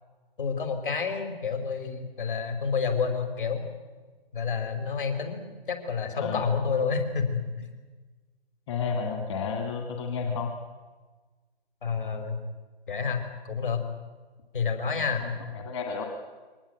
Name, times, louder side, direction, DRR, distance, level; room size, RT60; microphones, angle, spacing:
voice 1, 0.4-3.7 4.3-7.7 11.8-12.4 12.9-13.8 14.5-15.2, left 5 dB, 55° left, 7 dB, 5.1 m, -29 dB
voice 2, 6.2-6.5 8.7-10.5 15.1-16.0, left 5 dB, 30° left, 2 dB, 2.3 m, -32 dB
24.0 x 19.0 x 9.3 m, 1.3 s
figure-of-eight pair, 155°, 30 cm